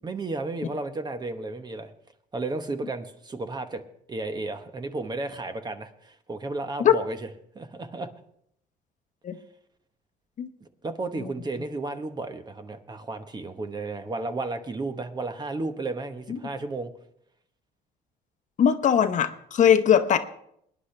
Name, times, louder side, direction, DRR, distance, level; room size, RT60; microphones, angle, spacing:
voice 1, 0.0-1.9 2.3-3.8 4.1-7.2 7.5-8.1 10.8-16.9, right 2 dB, 25° right, 9 dB, 1.0 m, -33 dB
voice 2, 18.6-20.2, left 8 dB, 45° left, 9 dB, 0.9 m, -20 dB
22.5 x 10.0 x 3.3 m, 0.71 s
cardioid pair, 110°, 17 cm